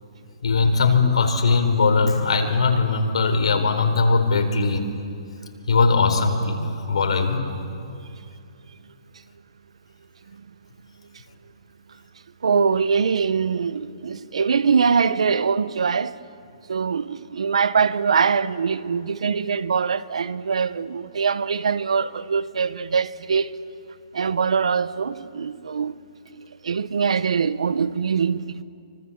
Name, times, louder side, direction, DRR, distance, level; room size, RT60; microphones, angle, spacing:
voice 1, 0.4-4.8 5.7-6.6 6.9-7.5, left 4 dB, 80° left, 4.1 m, -20 dB
voice 2, 12.4-16.2 16.7-23.5 24.1-26.0 26.4-28.6, right 6 dB, 85° right, 0.9 m, -23 dB
27.0 x 25.0 x 7.3 m
hypercardioid pair, 160°, 3 cm